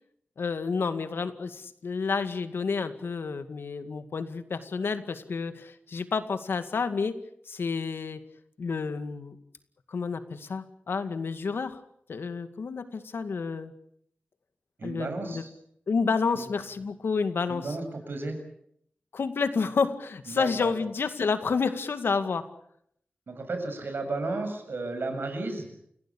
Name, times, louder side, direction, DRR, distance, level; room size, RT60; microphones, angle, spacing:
voice 1, 0.4-7.2 7.5-8.2 8.6-9.4 9.9-11.8 12.1-13.7 14.8-15.4 15.9-17.7 19.1-22.5, left 5 dB, 85° left, 10 dB, 2.2 m, -30 dB
voice 2, 14.8-15.5 16.3-16.4 17.5-18.4 20.3-20.7 23.3-25.7, right 3 dB, 70° right, 6 dB, 7.4 m, -33 dB
29.5 x 17.5 x 8.8 m, 0.71 s
wide cardioid pair, 105°, 4 cm